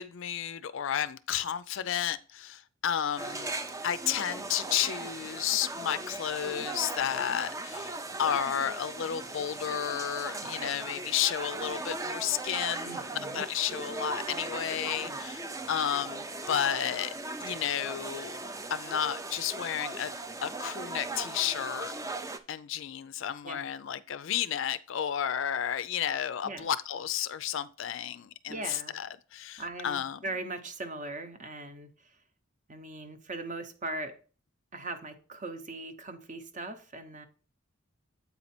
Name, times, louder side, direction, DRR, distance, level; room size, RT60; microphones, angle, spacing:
voice 1, 0.0-3.6 3.8-15.4 15.7-17.1 17.4-18.4 18.7-20.1 20.4-21.9 22.5-30.2, left 9 dB, 60° left, 0.4 m, -32 dB
sound 1, 3.2-22.4, right 2 dB, 15° right, 0.4 m, -38 dB
voice 2, 10.4-10.7 12.8-13.4 15.0-15.2 23.4-23.6 26.4-26.7 28.5-29.0 29.6-32.2 32.7-34.2 34.7-37.3, right 2 dB, 35° right, 0.8 m, -40 dB
8.3 x 4.2 x 4.3 m
head